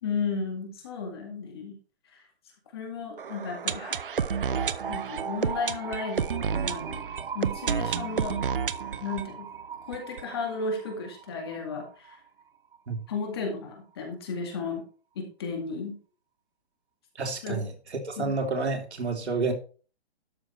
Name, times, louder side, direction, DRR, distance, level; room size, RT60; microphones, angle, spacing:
voice 1, 0.0-1.8 2.1-2.2 2.7-4.0 4.9-7.0 7.3-8.4 9.0-9.5 9.9-12.2 13.1-14.8 15.2-16.0 17.4-17.6 18.2-18.4, left 4 dB, 25° left, 2.1 m, -34 dB
sound 1, 3.2-10.9 11.2-11.3 11.5-11.6 12.1-12.2, right 7 dB, 55° right, 0.7 m, -31 dB
voice 2, 17.1-17.7 18.0-19.5, right 3 dB, 85° right, 2.8 m, -29 dB
12.5 x 6.1 x 4.4 m
hypercardioid pair, 180°, 32 cm